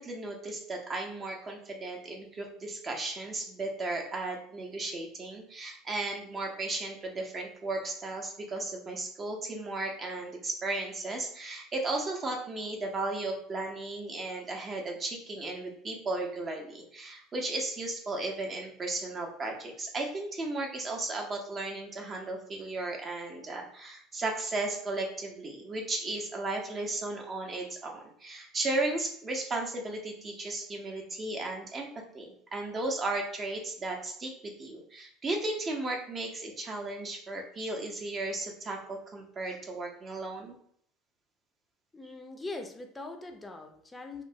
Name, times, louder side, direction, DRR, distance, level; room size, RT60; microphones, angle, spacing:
voice 1, 0.0-31.9 32.1-40.6, right 2 dB, 30° right, 1 dB, 0.6 m, -35 dB
voice 2, 41.9-44.2, left 2 dB, 15° left, 4 dB, 0.5 m, -41 dB
2.9 x 2.0 x 2.6 m, 0.63 s
hypercardioid pair, 70°, 0 cm